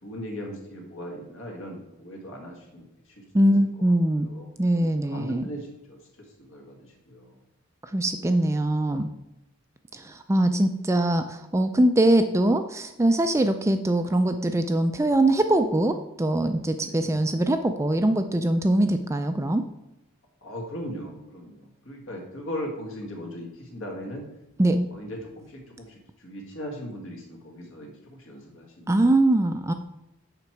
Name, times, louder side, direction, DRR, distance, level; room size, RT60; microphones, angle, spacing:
voice 1, 0.0-3.4 4.1-7.4 16.8-17.1 20.4-24.3 24.9-28.9, equal, 65° left, 1 dB, 1.9 m, -39 dB
voice 2, 3.3-4.3 4.6-5.4 7.9-9.1 9.9-19.6 24.6-24.9 28.9-29.7, right 1 dB, 15° right, 8 dB, 0.3 m, -22 dB
6.8 x 5.9 x 4.6 m, 0.91 s
head